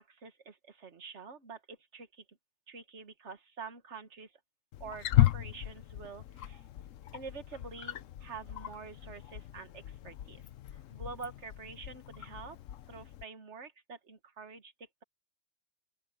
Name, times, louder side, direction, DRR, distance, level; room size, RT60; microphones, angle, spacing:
voice 1, 0.0-2.2 2.7-4.3 4.8-6.6 7.1-10.4 10.7-12.6 12.9-15.0, right 5 dB, 55° right, 1.8 m, -47 dB
Wild animals, 4.7-13.2, left 14 dB, 70° left, 1.0 m, -34 dB
open air
omnidirectional pair, 1.4 m